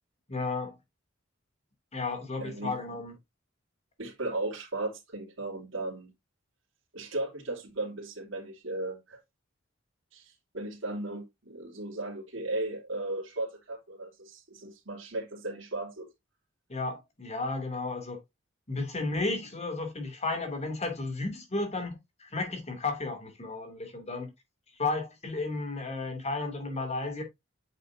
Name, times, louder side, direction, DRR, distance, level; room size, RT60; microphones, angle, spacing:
voice 1, 0.3-0.7 1.9-3.1 16.7-18.2 18.7-24.3 24.8-27.2, left 3 dB, 35° left, 2.7 m, -33 dB
voice 2, 2.4-2.8 4.0-6.1 6.9-9.2 10.1-16.1, right 2 dB, 70° right, 3.2 m, -36 dB
9.0 x 6.5 x 2.7 m
head